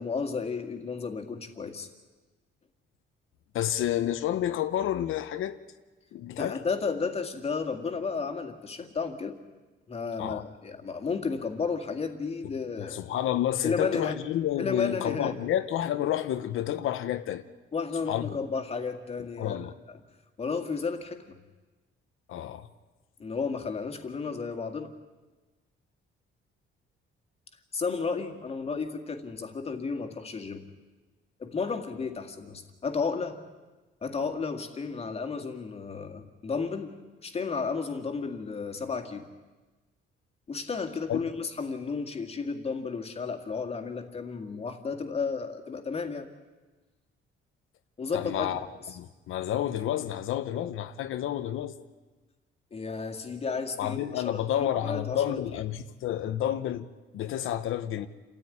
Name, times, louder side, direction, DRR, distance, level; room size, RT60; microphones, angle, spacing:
voice 1, 0.0-1.9 6.4-9.3 9.9-13.1 13.6-14.1 14.6-15.4 17.7-19.6 19.9-20.0 20.4-21.4 23.2-24.9 27.7-30.6 31.4-33.4 34.0-36.9 37.2-39.3 40.5-46.3 48.0-48.7 52.7-55.4, left 5 dB, 30° left, 2.0 m, -33 dB
voice 2, 3.5-5.6 6.1-6.6 10.2-10.4 12.8-17.4 18.1-18.4 19.4-19.7 22.3-22.7 41.1-41.2 48.1-48.6 48.9-51.8 53.8-56.9 57.1-58.1, left 11 dB, 75° left, 1.0 m, -30 dB
28.5 x 14.0 x 9.8 m
cardioid pair, 170°, 21 cm